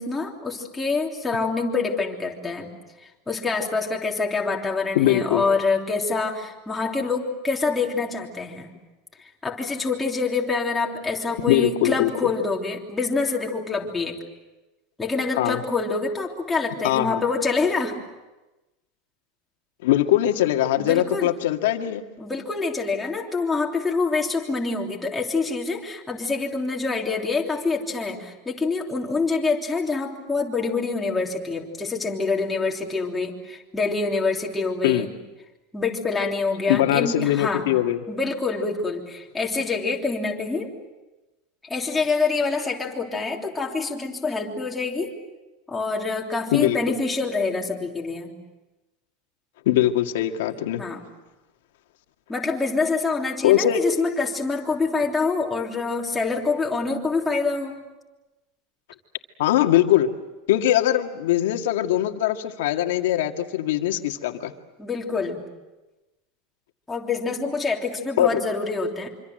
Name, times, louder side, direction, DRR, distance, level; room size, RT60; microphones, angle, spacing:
voice 1, 0.0-2.7 3.3-8.7 9.2-14.2 15.0-18.0 20.8-21.3 22.2-35.1 35.7-37.7 38.1-40.7 41.6-45.1 45.7-48.3 50.8-51.0 52.3-57.8 64.8-65.4 66.9-69.1, left 4 dB, 10° left, -1 dB, 3.2 m, -26 dB
voice 2, 4.9-5.4 11.5-12.1 15.4-15.6 16.8-17.2 19.8-22.1 34.8-35.1 36.7-38.0 46.5-46.8 49.7-50.8 53.4-53.8 59.4-60.1 60.5-64.5 68.2-68.4, left 13 dB, 85° left, 5 dB, 2.0 m, -21 dB
25.5 x 25.5 x 7.8 m, 1.1 s
supercardioid pair, 160°, 0 cm